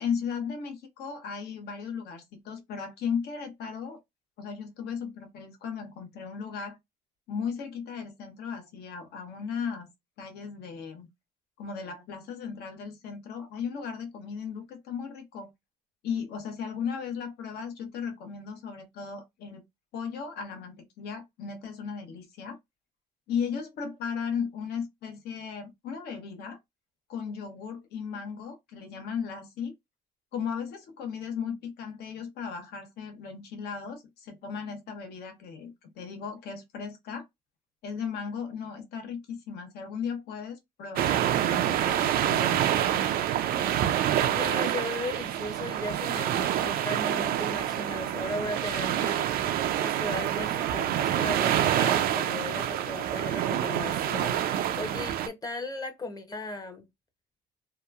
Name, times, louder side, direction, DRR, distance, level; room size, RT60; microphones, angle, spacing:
voice 1, 0.0-4.0 4.4-6.8 7.3-9.9 10.2-11.1 11.6-15.5 16.0-19.6 19.9-22.6 23.3-26.6 27.1-29.7 30.3-37.3 37.8-42.7, left 6 dB, 75° left, 0.9 m, -36 dB
sound 1, 41.0-55.3, right 11 dB, 60° right, 0.4 m, -27 dB
voice 2, 44.4-49.3 49.8-56.9, left 2 dB, 20° left, 0.7 m, -37 dB
2.9 x 2.3 x 2.3 m
cardioid pair, 110°, 17 cm